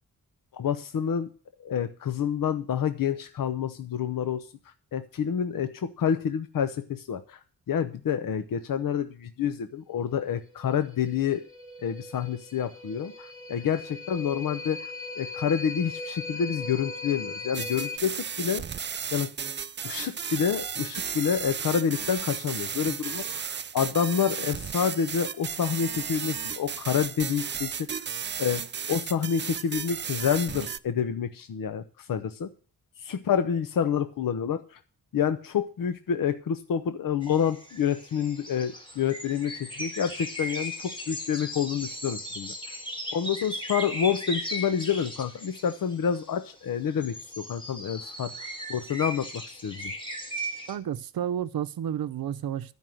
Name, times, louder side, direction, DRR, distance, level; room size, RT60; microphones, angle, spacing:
voice 1, 0.5-1.3 1.6-11.5 11.8-18.6 19.1-19.3 19.8-28.0 28.4-32.5 33.0-34.8 35.1-42.7 43.1-48.3 48.7-49.9, left 8 dB, 70° left, 0.8 m, -28 dB
sound 1, 10.5-18.0, left 3 dB, 35° left, 5.2 m, -39 dB
sound 2, 17.5-30.8, right 7 dB, 30° right, 0.4 m, -34 dB
sound 3, 37.2-46.4 46.9-50.8, equal, 15° left, 1.8 m, -37 dB
voice 2, 50.7-52.7, right 10 dB, 80° right, 0.7 m, -31 dB
12.5 x 5.5 x 7.7 m
wide cardioid pair, 95°, 35 cm